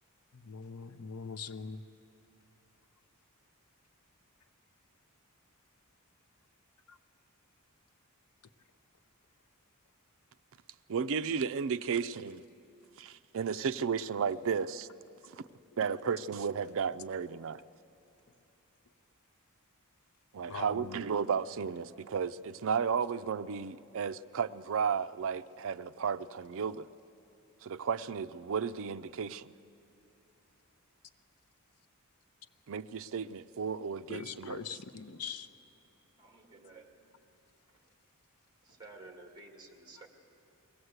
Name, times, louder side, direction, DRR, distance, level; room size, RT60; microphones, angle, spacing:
voice 1, 0.3-1.8 6.9-7.0 20.5-21.0 34.1-35.5, left 5 dB, 80° left, 11 dB, 0.7 m, -42 dB
voice 2, 10.9-12.4 13.0-14.9 15.4-15.5 15.8-17.6 20.3-26.9 27.6-29.5 32.7-34.6, right 6 dB, 65° right, 12 dB, 0.5 m, -33 dB
voice 3, 36.2-37.0 37.7-37.8 38.6-40.1, right 3 dB, 20° right, 2 dB, 2.0 m, -53 dB
21.5 x 17.5 x 8.0 m, 2.7 s
head